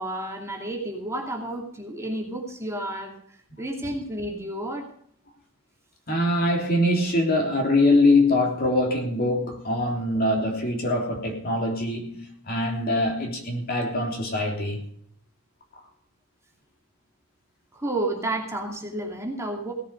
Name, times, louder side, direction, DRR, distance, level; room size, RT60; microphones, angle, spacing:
voice 1, 0.0-4.9 17.7-19.7, right 1 dB, 15° right, 2.6 m, -31 dB
voice 2, 6.1-14.8, left 1 dB, 45° left, 3.4 m, -23 dB
17.5 x 7.7 x 6.5 m
head